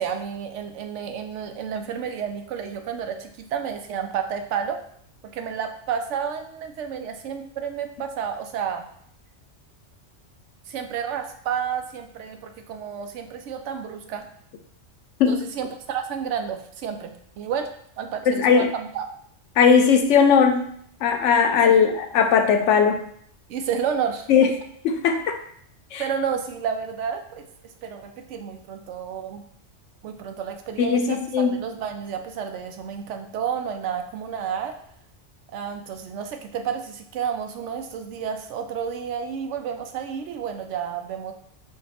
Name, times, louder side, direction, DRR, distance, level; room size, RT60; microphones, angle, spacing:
voice 1, 0.0-4.8 5.3-8.9 10.7-14.3 15.3-17.7 18.0-19.0 23.5-24.3 26.0-27.4 27.8-29.4 30.0-31.2 31.5-34.7 35.5-41.3, right 7 dB, 80° right, 5 dB, 0.9 m, -30 dB
voice 2, 18.3-18.7 19.6-20.7 21.0-23.0 24.3-24.5 24.8-25.4 25.9-26.0 30.8-31.6, left 6 dB, 80° left, 6 dB, 0.9 m, -18 dB
4.7 x 2.3 x 4.1 m, 0.65 s
omnidirectional pair, 1.2 m